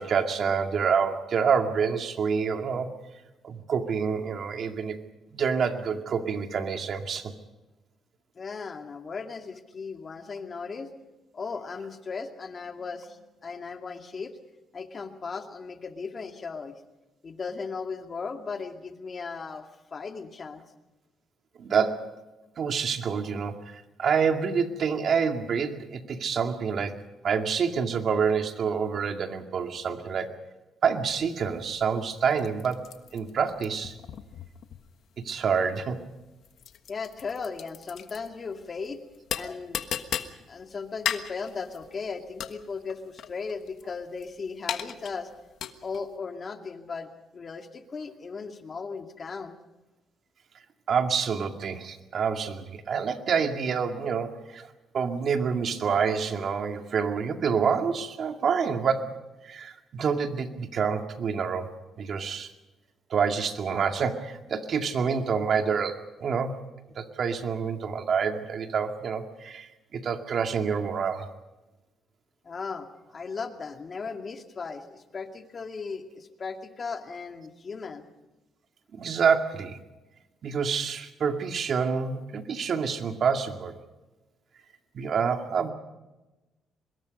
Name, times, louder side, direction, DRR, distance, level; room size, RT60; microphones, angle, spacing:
voice 1, 0.0-2.9 3.4-5.0 5.3-7.3 21.6-22.1 22.6-27.0 27.2-30.3 30.8-32.8 33.1-34.0 35.2-36.0 50.9-54.7 54.9-59.2 59.4-61.7 62.0-62.5 63.1-66.5 67.0-71.3 78.9-79.8 80.4-83.7 84.9-85.7, right 6 dB, 60° right, 5 dB, 2.2 m, -27 dB
voice 2, 8.4-10.9 11.3-14.4 14.7-16.7 17.2-20.6 36.9-39.0 39.3-39.8 40.5-45.3 45.8-49.6 72.4-72.9 73.1-78.0, left 5 dB, 40° left, 5 dB, 2.3 m, -37 dB
sound 1, 31.1-46.1, left 9 dB, 70° left, 1.4 m, -38 dB
24.5 x 21.5 x 5.4 m, 1.1 s
cardioid pair, 90°, 0 cm